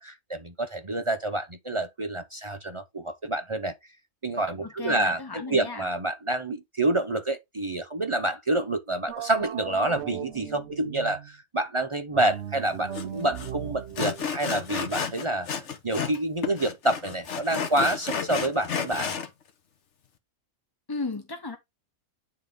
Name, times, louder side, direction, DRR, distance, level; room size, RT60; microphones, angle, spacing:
voice 1, 0.0-3.8 4.2-15.5 15.8-19.1, right 2 dB, 35° right, 0.5 m, -28 dB
voice 2, 4.6-5.9 20.9-21.6, left 3 dB, 20° left, 0.7 m, -34 dB
sound 1, 9.1-11.4 12.1-15.5, right 10 dB, 60° right, 0.8 m, -39 dB
Sawing, 12.9-13.0 13.4-13.5 14.0-16.2 16.4-19.3, left 6 dB, 60° left, 1.3 m, -31 dB
9.4 x 3.7 x 3.6 m
omnidirectional pair, 1.4 m